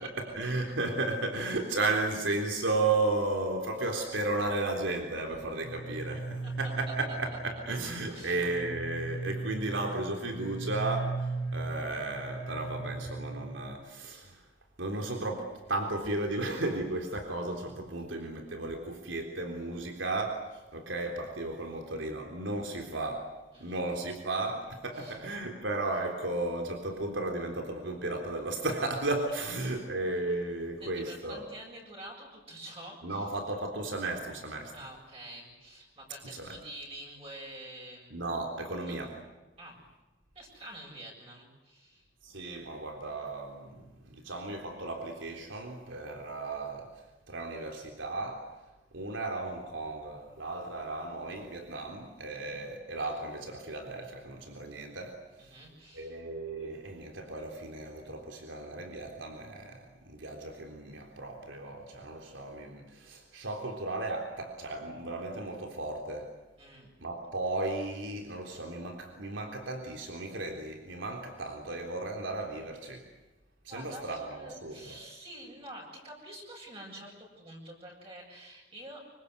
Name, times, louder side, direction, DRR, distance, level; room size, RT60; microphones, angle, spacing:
voice 1, 0.2-14.4 14.8-23.3 23.6-31.4 33.0-34.7 36.3-36.6 38.1-39.2 42.2-46.9 47.3-48.5 48.9-55.5 55.9-66.3 67.0-73.1 73.6-75.0, right 2 dB, 85° right, 2 dB, 3.6 m, -34 dB
sound 1, 5.6-13.7, right 2 dB, 85° left, 3.0 m, -38 dB
voice 2, 30.8-33.3 34.7-38.3 38.8-39.0 39.6-39.8 40.3-42.1 52.3-52.7 55.4-56.2 66.6-66.9 73.7-79.0, right 1 dB, 30° right, -2 dB, 7.5 m, -47 dB
26.0 x 24.5 x 8.3 m, 1.1 s
head